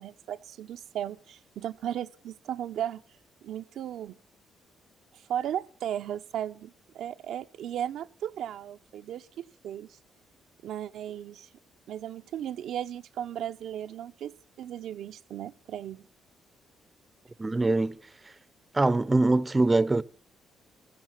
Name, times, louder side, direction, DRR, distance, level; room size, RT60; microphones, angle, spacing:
voice 1, 0.0-3.0 3.4-4.2 5.1-9.9 10.6-11.5 11.9-16.0, right 10 dB, 75° right, 0.8 m, -36 dB
voice 2, 17.4-18.0 18.7-20.0, right 2 dB, 20° right, 0.7 m, -23 dB
14.5 x 12.5 x 7.4 m
cardioid pair, 90°, 0 cm